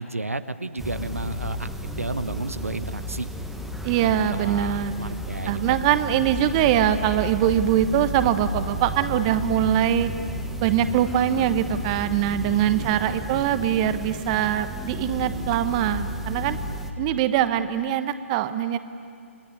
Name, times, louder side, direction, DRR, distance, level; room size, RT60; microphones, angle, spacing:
voice 1, 0.0-3.3 3.9-5.8 12.4-13.2, right 2 dB, 80° right, 11 dB, 1.2 m, -32 dB
sound 1, 0.8-16.9, equal, ahead, 1.6 m, -33 dB
voice 2, 3.8-4.9 5.5-10.1 10.6-16.6 17.0-18.8, right 11 dB, 30° right, 11 dB, 1.2 m, -23 dB
28.5 x 19.5 x 9.9 m, 2.3 s
figure-of-eight pair, 125°, 7 cm